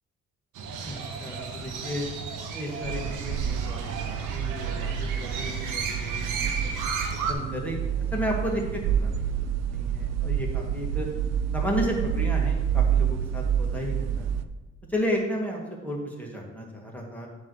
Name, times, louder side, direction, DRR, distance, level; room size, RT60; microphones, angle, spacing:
Crow, 0.6-7.3, right 5 dB, 85° right, 0.9 m, -34 dB
voice 1, 1.2-2.1 2.5-3.8 4.1-6.7 7.3-11.1 11.5-14.3 14.9-17.3, equal, 5° left, -2 dB, 1.6 m, -33 dB
sound 1, 2.8-14.4, right 8 dB, 60° right, 0.5 m, -28 dB
7.6 x 3.1 x 6.2 m, 1.1 s
cardioid pair, 90°, 30 cm